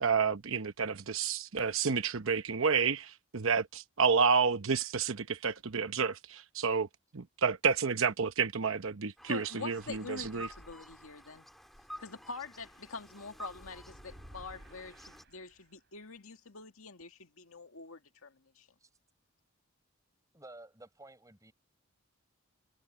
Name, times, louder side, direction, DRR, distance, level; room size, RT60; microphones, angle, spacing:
voice 1, 0.0-6.9 7.1-10.5, right 5 dB, 70° right, 0.9 m, -30 dB
sound 1, 9.2-15.2, equal, ahead, 2.2 m, -51 dB
voice 2, 9.3-11.5 12.0-18.7, left 4 dB, 80° left, 2.1 m, -45 dB
sound 2, 13.3-16.0, right 1 dB, 55° right, 5.3 m, -55 dB
voice 3, 20.3-21.5, right 2 dB, 15° right, 5.8 m, -52 dB
head